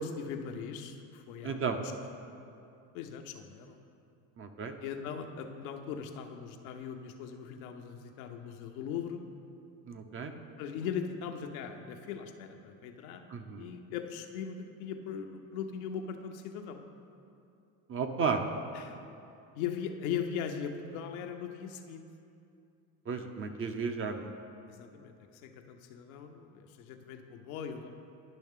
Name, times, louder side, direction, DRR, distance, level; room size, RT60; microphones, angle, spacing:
voice 1, 0.0-1.8 2.9-3.8 4.8-9.2 10.6-13.2 13.6-16.8 18.7-19.1 19.5-22.0 23.2-23.3 24.7-27.9, left 7 dB, 85° left, 5 dB, 0.8 m, -39 dB
voice 2, 1.4-1.8 4.4-4.7 9.9-10.3 13.3-13.7 17.9-18.4 23.1-24.3, right 5 dB, 30° right, 6 dB, 0.6 m, -33 dB
10.5 x 5.6 x 3.6 m, 2.6 s
supercardioid pair, 95°, 41 cm